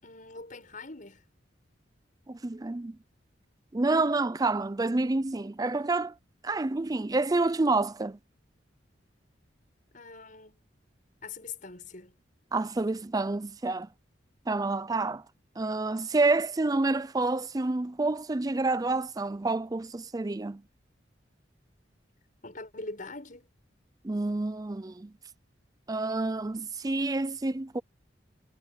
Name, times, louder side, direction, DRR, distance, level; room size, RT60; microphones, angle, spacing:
voice 1, 0.0-1.2 9.9-10.6 11.2-12.1 22.4-23.5, left 3 dB, 45° left, 7.1 m, -43 dB
voice 2, 2.3-3.0 3.7-6.1 6.4-8.2 12.5-13.9 14.5-15.2 15.6-20.6 24.0-25.1 25.9-27.8, right 3 dB, 20° right, 0.4 m, -28 dB
head